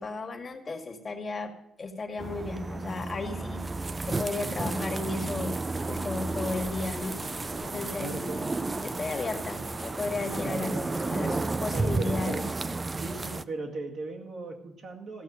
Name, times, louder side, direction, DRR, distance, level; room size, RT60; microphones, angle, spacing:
voice 1, 0.0-1.5 1.8-5.6 5.9-7.2 7.6-8.1 8.8-10.8 11.1-12.4, left 3 dB, 35° left, 4 dB, 2.0 m, -34 dB
sound 1, 2.2-13.4, right 3 dB, 25° right, 0.5 m, -32 dB
sound 2, 5.9-11.3, left 2 dB, 15° left, 0.7 m, -45 dB
voice 2, 8.0-8.5 10.4-11.4 11.7-12.5 12.9-15.2, right 2 dB, 55° right, 2 dB, 2.0 m, -38 dB
15.0 x 6.3 x 6.4 m, 0.81 s
cardioid pair, 90°, 0 cm